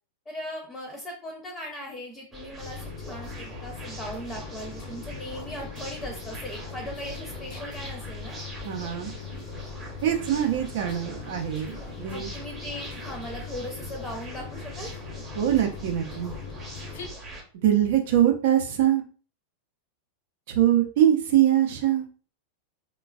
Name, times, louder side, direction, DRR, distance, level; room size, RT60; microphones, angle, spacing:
voice 1, 0.3-8.4 12.1-15.2, equal, 15° left, 1 dB, 0.7 m, -39 dB
sound 1, 2.3-17.4, right 1 dB, 20° right, 0.9 m, -41 dB
sound 2, 2.6-17.1, left 7 dB, 55° left, 0.5 m, -41 dB
voice 2, 8.6-9.1 10.0-12.3 15.3-16.3 17.6-19.0 20.5-22.1, right 11 dB, 55° right, 3 dB, 0.6 m, -23 dB
3.2 x 2.3 x 2.2 m, 0.38 s
figure-of-eight pair, 90°, 0 cm